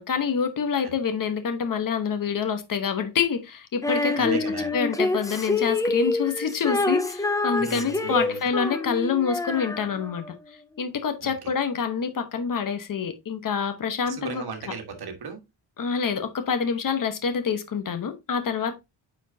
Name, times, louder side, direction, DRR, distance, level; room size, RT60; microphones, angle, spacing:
voice 1, 0.0-4.4 4.7-10.2 10.8-14.4 15.8-18.8, left 6 dB, 45° left, 1.1 m, -26 dB
Female singing, 3.8-10.3, left 2 dB, 10° left, 0.3 m, -27 dB
voice 2, 4.1-4.7 7.6-8.5 11.2-11.5 14.0-15.4, right 5 dB, 50° right, 1.8 m, -37 dB
8.9 x 4.5 x 2.7 m
wide cardioid pair, 155°, 47 cm